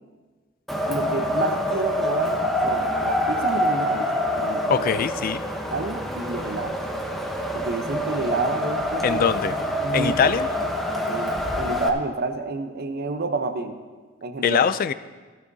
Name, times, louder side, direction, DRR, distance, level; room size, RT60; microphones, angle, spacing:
Wind, 0.7-11.9, left 1 dB, ahead, 0.8 m, -26 dB
voice 1, 0.9-4.9 5.7-6.8 7.5-9.6 9.8-10.3 11.1-13.8 14.2-14.7, right 3 dB, 50° right, 7 dB, 0.8 m, -29 dB
voice 2, 4.7-5.4 9.0-9.5 9.9-10.5 14.4-14.9, left 7 dB, 45° left, 14 dB, 0.3 m, -22 dB
15.0 x 12.0 x 2.7 m, 1.4 s
head